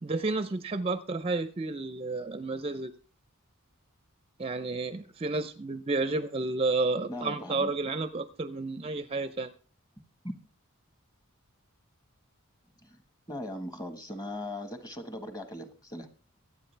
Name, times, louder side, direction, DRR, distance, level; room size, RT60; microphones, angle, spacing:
voice 1, 0.0-2.9 4.4-9.5, right 3 dB, 25° right, 12 dB, 0.5 m, -31 dB
voice 2, 7.1-7.9 10.2-10.3 13.3-16.1, left 1 dB, 15° left, 8 dB, 1.4 m, -39 dB
23.5 x 8.5 x 3.3 m, 0.38 s
head